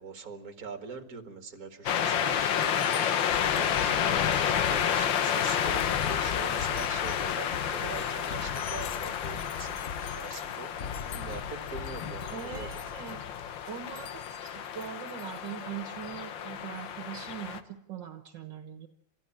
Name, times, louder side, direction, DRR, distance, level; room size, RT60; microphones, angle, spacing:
voice 1, 0.0-3.1 3.5-10.7 11.1-12.7, right 5 dB, 50° right, 7 dB, 2.4 m, -43 dB
sound 1, 1.9-17.6, left 9 dB, 90° left, 1.8 m, -30 dB
sound 2, 3.3-13.2, left 6 dB, 40° left, 1.2 m, -42 dB
voice 2, 12.3-13.2 13.7-18.9, right 9 dB, 75° right, 8 dB, 2.0 m, -41 dB
29.0 x 13.5 x 8.8 m, 0.76 s
omnidirectional pair, 2.0 m